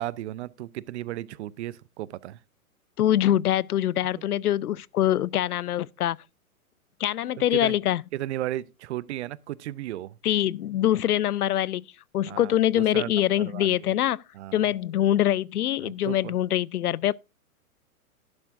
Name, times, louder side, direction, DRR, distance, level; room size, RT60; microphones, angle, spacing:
voice 1, 0.0-2.4 4.2-4.3 7.5-7.8 8.1-10.2 12.3-13.8 14.3-14.6 15.8-16.4, right 14 dB, 50° right, 0.6 m, -35 dB
voice 2, 3.0-6.2 7.0-8.0 10.2-11.8 12.1-14.2 14.5-17.1, left 12 dB, 85° left, 0.6 m, -24 dB
11.5 x 11.0 x 2.5 m
hypercardioid pair, 120°, 44 cm